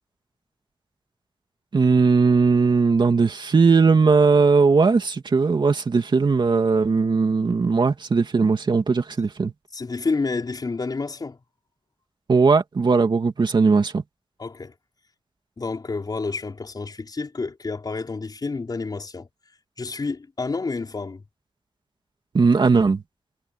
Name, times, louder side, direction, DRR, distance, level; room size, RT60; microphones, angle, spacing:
voice 1, 1.7-9.5 12.3-14.0 22.3-23.0, right 4 dB, 55° right, 2.8 m, -18 dB
voice 2, 9.7-11.4 14.4-14.7 15.6-19.3 19.8-21.2, left 4 dB, 45° left, 5.5 m, -29 dB
wide cardioid pair, 110°, 10 cm